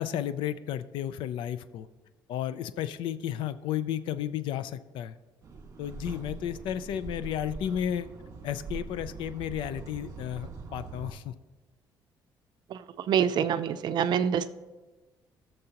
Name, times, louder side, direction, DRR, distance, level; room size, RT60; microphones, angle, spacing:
voice 1, 0.0-1.9 2.3-5.2 5.8-8.1 8.4-11.3, left 10 dB, 85° left, 13 dB, 0.5 m, -33 dB
sound 1, 5.4-11.1, right 4 dB, 35° right, 1.7 m, -42 dB
voice 2, 12.7-14.6, right 8 dB, 60° right, 11 dB, 0.5 m, -27 dB
19.0 x 6.7 x 2.9 m, 1.2 s
cardioid pair, 125°, 8 cm